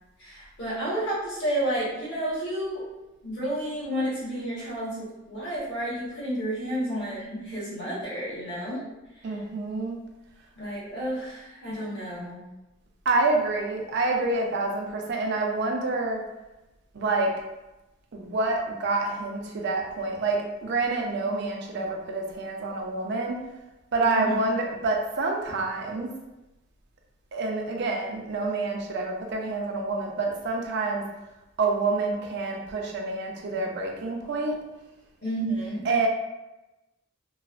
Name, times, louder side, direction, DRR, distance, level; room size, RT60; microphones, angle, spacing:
voice 1, 0.2-2.8 3.2-8.9 9.2-9.4 10.6-12.4 24.0-24.3 35.2-35.9, right 1 dB, 60° left, -7 dB, 1.1 m, -31 dB
voice 2, 9.2-10.0 13.1-16.2 16.9-17.4 18.1-23.4 23.9-26.1 27.3-31.0 31.6-34.6 35.9-36.1, right 3 dB, 60° right, 1 dB, 0.5 m, -27 dB
3.1 x 2.1 x 2.4 m, 1.0 s
head